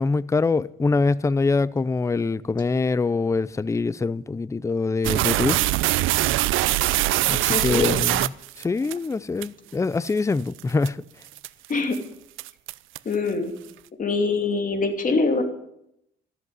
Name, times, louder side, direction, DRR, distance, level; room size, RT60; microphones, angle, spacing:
voice 1, 0.0-5.6 7.3-8.3 8.6-11.0, left 3 dB, 15° left, 0.5 m, -24 dB
sound 1, 5.0-8.9 9.4-9.5 10.1-10.2 10.6-10.9 11.4-11.7 11.9-12.0 12.4-13.1, right 16 dB, 85° right, 0.5 m, -22 dB
voice 2, 7.5-7.9 11.7-12.0 13.0-13.5 14.0-15.4, left 3 dB, 45° left, 2.7 m, -23 dB
14.5 x 7.9 x 9.5 m
cardioid pair, 90°, 20 cm